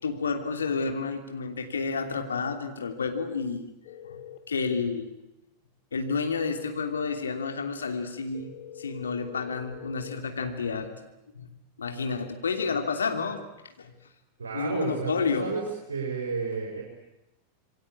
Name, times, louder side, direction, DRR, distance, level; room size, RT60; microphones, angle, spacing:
voice 1, 0.0-3.7 4.1-4.2 4.5-5.1 5.9-8.5 8.8-10.9 11.3-11.5 11.8-13.4 13.8-13.9 14.5-15.5, left 5 dB, 70° left, 5 dB, 3.0 m, -30 dB
sound 1, 3.8-4.4 8.3-10.2, left 11 dB, 50° left, 3.1 m, -44 dB
voice 2, 14.4-15.6 15.9-16.8, right 5 dB, 70° right, -1 dB, 5.2 m, -31 dB
27.5 x 23.0 x 8.6 m, 0.94 s
figure-of-eight pair, 90°, 0 cm